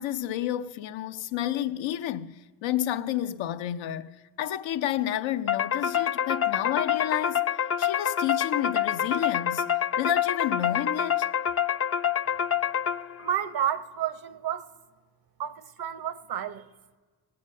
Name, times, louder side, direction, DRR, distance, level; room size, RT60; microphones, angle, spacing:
voice 1, 0.0-9.7 10.0-11.3, left 11 dB, 90° left, 0.7 m, -30 dB
sound 1, 5.5-13.3, left 9 dB, 35° left, 0.4 m, -27 dB
voice 2, 13.2-14.7 15.4-16.7, right 10 dB, 55° right, 0.9 m, -31 dB
18.0 x 8.7 x 6.5 m
cardioid pair, 75°, 44 cm